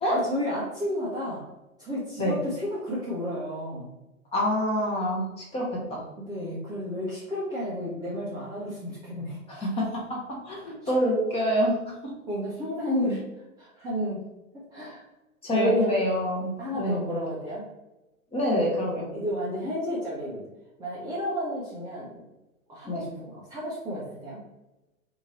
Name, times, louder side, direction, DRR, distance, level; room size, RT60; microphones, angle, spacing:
voice 1, 0.1-1.4 1.8-3.9 6.2-9.4 10.8-10.9 12.3-13.2 13.6-14.2 14.7-15.0 15.5-15.9 16.6-17.6 19.1-20.4 20.8-22.2 22.7-24.4, equal, 10° right, -9 dB, 0.6 m, -32 dB
voice 2, 4.3-5.2 5.5-6.0 9.6-9.8 10.4-11.7 15.4-17.0 18.3-19.1 22.9-23.0, equal, 15° left, -3 dB, 0.9 m, -25 dB
2.9 x 2.7 x 4.1 m, 1.0 s
figure-of-eight pair, 110°, 43 cm